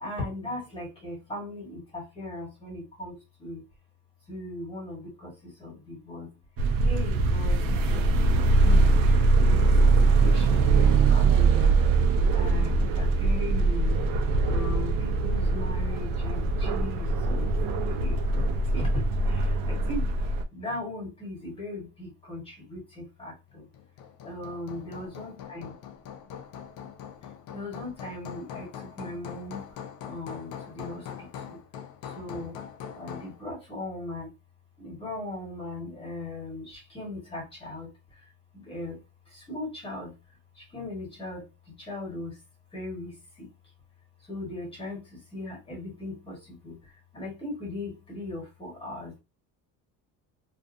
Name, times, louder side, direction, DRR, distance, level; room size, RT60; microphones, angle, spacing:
voice 1, 0.0-3.1 3.4-3.6 4.3-5.3 5.6-6.3 6.8-8.1 8.6-8.8 9.4-11.7 12.3-14.0 14.4-17.5 17.9-19.0 19.3-20.1 20.5-23.6 24.2-25.7 27.5-28.7 29.0-29.6 30.0-31.6 32.2-32.5 32.9-34.3 34.8-37.9 38.5-39.0 39.5-40.1 40.7-41.4 41.9-42.3 42.7-43.1 43.4-43.5 44.3-45.0 45.3-46.8 47.1-49.1, left 2 dB, 15° left, -2 dB, 1.4 m, -38 dB
sound 1, 6.6-20.4, right 3 dB, 70° right, 0.6 m, -22 dB
Hammer, 23.7-33.4, left 8 dB, 50° left, 0.5 m, -42 dB
2.5 x 2.4 x 2.5 m, 0.25 s
cardioid pair, 160°, 36 cm